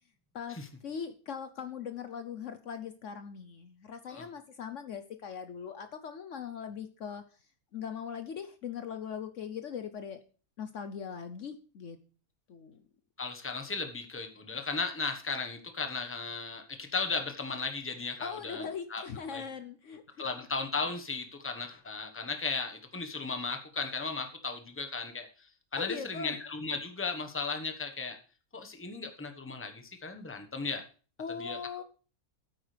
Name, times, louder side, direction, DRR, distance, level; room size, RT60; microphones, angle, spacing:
voice 1, 0.3-7.2 7.7-10.2 10.6-12.0 12.5-12.9 18.2-20.0 25.8-26.4 31.2-31.8, left 7 dB, 60° left, 9 dB, 1.0 m, -40 dB
voice 2, 13.2-19.0 19.3-19.4 20.2-25.3 25.7-28.2 28.5-30.8 31.4-31.8, left 4 dB, 10° left, 6 dB, 1.1 m, -36 dB
13.5 x 8.8 x 3.3 m, 0.38 s
omnidirectional pair, 1.6 m